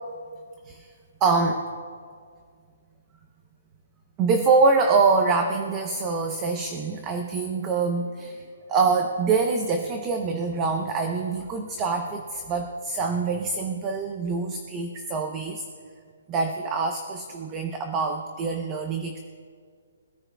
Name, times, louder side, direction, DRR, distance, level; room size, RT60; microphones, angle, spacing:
voice 1, 1.2-1.6 4.2-8.4 8.7-15.6 16.3-19.2, right 4 dB, 15° right, 4 dB, 0.7 m, -25 dB
24.0 x 14.0 x 2.3 m, 2.1 s
hypercardioid pair, 180°, 0 cm